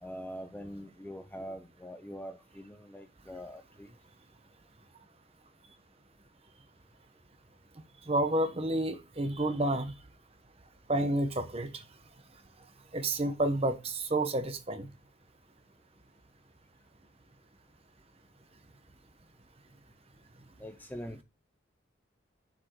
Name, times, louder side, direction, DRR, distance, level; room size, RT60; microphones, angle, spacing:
voice 1, 0.0-3.9 20.6-21.2, equal, 10° left, 0.5 m, -43 dB
voice 2, 8.1-9.9 10.9-11.8 12.9-14.9, right 1 dB, 30° right, 0.9 m, -30 dB
7.1 x 4.9 x 4.5 m
head